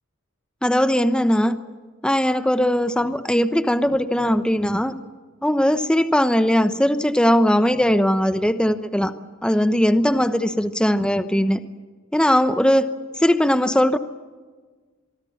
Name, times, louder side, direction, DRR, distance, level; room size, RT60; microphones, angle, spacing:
voice 1, 0.6-1.6 2.0-5.0 5.4-9.1 9.4-11.6 12.1-12.9 13.2-14.0, equal, 5° left, 10 dB, 0.9 m, -19 dB
24.5 x 24.0 x 7.2 m, 1.4 s
head